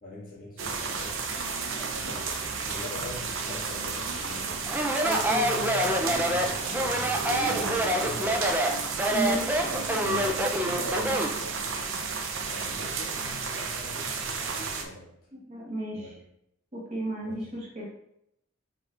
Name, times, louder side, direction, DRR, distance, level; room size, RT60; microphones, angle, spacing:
voice 1, 0.0-1.3 1.7-4.6 5.1-6.8 7.4-8.6 9.7-12.1 12.5-15.1 15.9-16.2 17.2-17.5, left 2 dB, 40° left, -6 dB, 1.6 m, -42 dB
sound 1, 0.6-14.8, right 5 dB, 60° right, 0.5 m, -32 dB
Speech, 4.7-11.4, right 1 dB, 10° right, 0.3 m, -26 dB
voice 2, 5.0-5.5 9.1-9.6 9.9-10.2 15.3-16.2 16.7-17.8, equal, 30° right, -4 dB, 1.1 m, -33 dB
4.8 x 3.7 x 2.4 m, 0.77 s
head